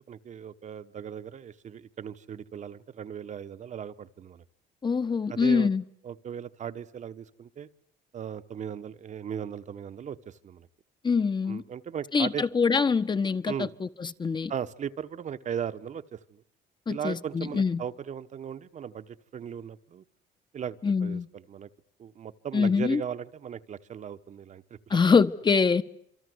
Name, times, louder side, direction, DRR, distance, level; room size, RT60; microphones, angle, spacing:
voice 1, 0.1-4.4 5.3-5.7 6.0-7.7 8.1-10.7 11.5-12.4 13.5-13.7 14.5-16.4 16.9-20.0 20.5-21.7 22.0-25.0, right 8 dB, 45° right, 1.2 m, -37 dB
voice 2, 4.8-5.8 11.0-11.6 12.1-14.5 16.9-17.8 20.8-21.3 22.5-23.0 24.9-25.8, left 5 dB, 25° left, 1.2 m, -24 dB
27.5 x 24.0 x 8.0 m
cardioid pair, 110°, 17 cm